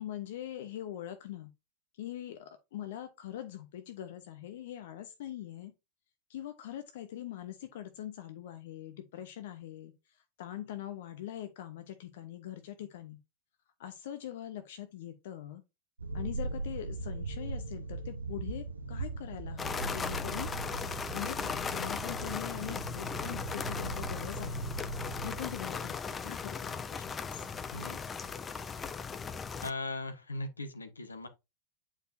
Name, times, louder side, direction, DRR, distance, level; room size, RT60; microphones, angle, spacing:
voice 1, 0.0-1.5 1.9-5.7 6.3-13.2 13.8-15.6 16.1-20.5 21.1-24.7 25.2-27.5, left 12 dB, 55° left, 0.9 m, -43 dB
sound 1, 16.0-25.6, right 3 dB, 80° right, 0.8 m, -39 dB
sound 2, 19.6-29.7, left 5 dB, 20° left, 0.5 m, -37 dB
voice 2, 27.7-28.0 29.6-31.3, left 2 dB, 75° left, 1.1 m, -39 dB
9.0 x 4.9 x 2.7 m
figure-of-eight pair, 90°, 0 cm